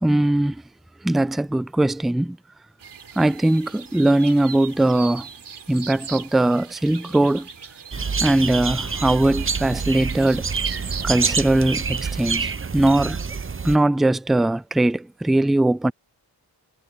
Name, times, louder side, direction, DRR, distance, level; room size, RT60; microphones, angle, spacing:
voice 1, 0.0-0.6 1.0-2.4 3.2-5.3 5.7-7.5 8.2-10.5 11.0-13.2 13.6-15.9, right 1 dB, ahead, 0.3 m, -20 dB
sound 1, 2.8-12.6, right 6 dB, 70° right, 4.0 m, -40 dB
sound 2, 7.9-13.8, right 5 dB, 30° right, 0.9 m, -27 dB
cardioid pair, 65°, 43 cm